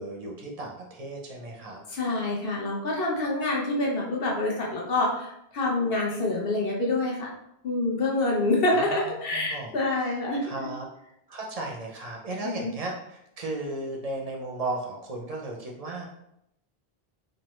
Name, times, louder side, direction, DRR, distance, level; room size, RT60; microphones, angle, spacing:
voice 1, 0.0-1.8 8.7-9.7 10.4-10.9 11.3-16.1, right 2 dB, 50° right, 0 dB, 0.5 m, -35 dB
voice 2, 1.9-7.3 7.6-10.7 12.4-12.7, left 2 dB, 65° left, -2 dB, 1.0 m, -27 dB
3.2 x 2.1 x 3.0 m, 0.78 s
omnidirectional pair, 1.0 m